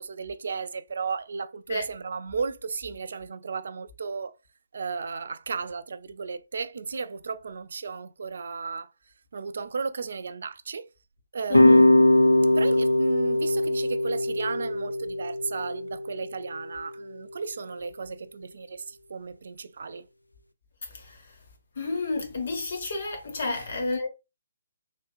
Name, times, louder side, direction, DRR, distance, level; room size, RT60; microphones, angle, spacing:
voice 1, 0.0-4.3 4.7-8.9 9.3-10.9 11.3-11.9 12.5-20.1 23.5-23.6, right 5 dB, 55° right, 0.3 m, -34 dB
sound 1, 11.5-16.6, left 1 dB, 85° left, 0.4 m, -21 dB
voice 2, 11.5-11.8 20.8-21.3 21.7-24.1, left 3 dB, 55° left, 1.3 m, -31 dB
3.4 x 2.8 x 2.4 m
figure-of-eight pair, 135°, 0 cm